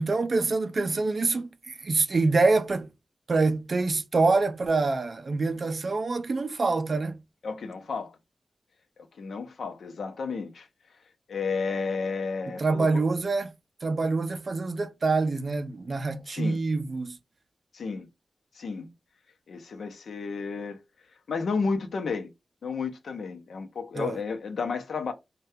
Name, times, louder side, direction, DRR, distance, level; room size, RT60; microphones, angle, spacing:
voice 1, 0.0-2.9 3.3-7.2 12.5-13.5 13.8-17.2 23.9-24.2, right 3 dB, 45° right, 0.3 m, -26 dB
voice 2, 7.4-8.1 9.2-10.7 11.3-13.0 16.3-16.6 17.7-18.1 18.5-18.9 19.5-20.8 21.3-22.3 22.6-25.1, left 4 dB, 85° left, 0.6 m, -32 dB
2.7 x 2.2 x 3.3 m
wide cardioid pair, 135°, 0 cm